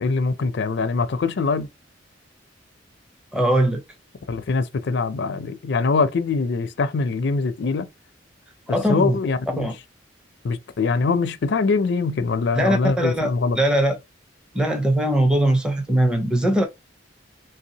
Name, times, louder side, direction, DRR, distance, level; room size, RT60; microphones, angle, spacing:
voice 1, 0.0-1.7 4.3-7.9 8.7-9.7 10.4-13.6, left 4 dB, 65° left, 0.4 m, -23 dB
voice 2, 3.3-3.8 8.7-9.2 9.6-9.7 12.5-14.0 14.5-16.6, right 1 dB, 5° right, 0.6 m, -20 dB
3.3 x 2.7 x 2.8 m
head